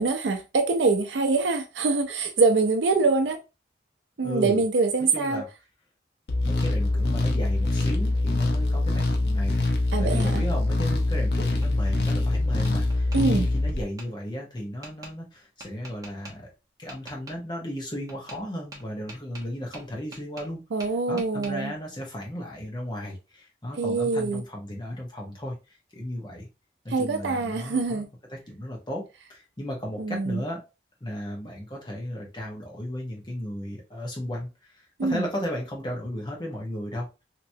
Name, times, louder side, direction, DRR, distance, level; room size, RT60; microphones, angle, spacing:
voice 1, 0.0-3.4 4.2-5.4 9.9-10.4 13.1-13.5 20.7-21.7 23.7-24.4 26.9-28.1 30.0-30.4 35.0-35.3, right 3 dB, 85° right, 0.5 m, -24 dB
voice 2, 4.2-4.6 5.0-5.5 6.4-9.6 10.0-16.5 16.8-20.6 21.1-25.6 25.9-26.5 26.8-29.0 29.3-30.6 31.0-37.1, equal, 25° left, 1.1 m, -35 dB
sound 1, 6.3-13.8, left 2 dB, 70° left, 0.7 m, -24 dB
Tap, 11.1-12.2 12.6-13.2 14.0-14.1 14.8-15.1 15.6-16.3 16.9-17.4 18.1-18.4 18.7-20.5 20.8-21.5, right 2 dB, 20° right, 1.0 m, -44 dB
3.1 x 2.9 x 2.7 m
head